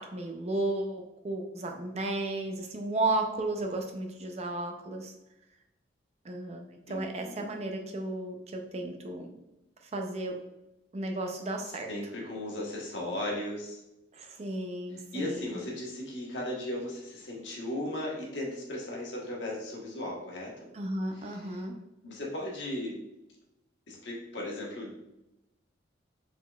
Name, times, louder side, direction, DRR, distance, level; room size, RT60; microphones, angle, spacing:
voice 1, 0.0-5.1 6.2-9.4 9.8-10.4 10.9-11.9 14.1-15.6 20.7-21.7, right 2 dB, 35° right, 3 dB, 0.5 m, -34 dB
voice 2, 6.9-7.4 11.9-13.8 15.1-20.5 21.1-21.6 22.0-22.9 23.9-25.0, left 1 dB, 75° left, -3 dB, 1.2 m, -36 dB
4.3 x 3.7 x 2.3 m, 0.92 s
head